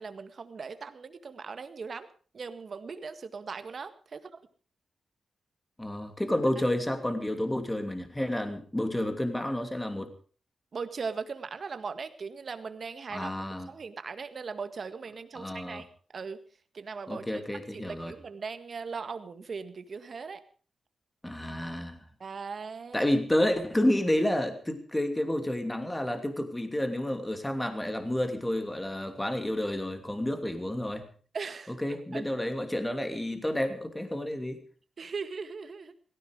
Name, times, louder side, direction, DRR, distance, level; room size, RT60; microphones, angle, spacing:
voice 1, 0.0-2.1 2.3-4.3 10.7-15.9 16.1-16.4 16.7-17.4 17.7-20.4 22.2-23.1 31.3-32.2 35.0-35.9, right 5 dB, 55° right, 11 dB, 1.8 m, -39 dB
voice 2, 5.8-10.1 13.1-13.7 15.3-15.8 17.1-18.1 21.2-22.0 22.9-31.1 31.8-34.6, left 1 dB, 10° left, 7 dB, 2.8 m, -30 dB
17.5 x 15.5 x 5.0 m, 0.41 s
cardioid pair, 85°, 0 cm